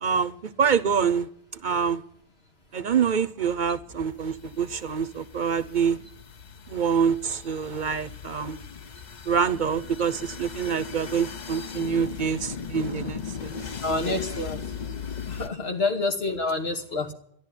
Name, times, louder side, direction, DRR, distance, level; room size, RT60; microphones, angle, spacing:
voice 1, 0.0-2.0 2.7-6.0 6.7-8.6 9.3-13.5, right 6 dB, 55° right, 12 dB, 0.9 m, -26 dB
sound 1, 3.5-15.5, left 6 dB, 45° left, 0.9 m, -38 dB
voice 2, 13.8-14.6 15.3-17.1, left 2 dB, 85° left, 2 dB, 2.6 m, -28 dB
13.0 x 11.0 x 9.9 m, 0.66 s
omnidirectional pair, 1.0 m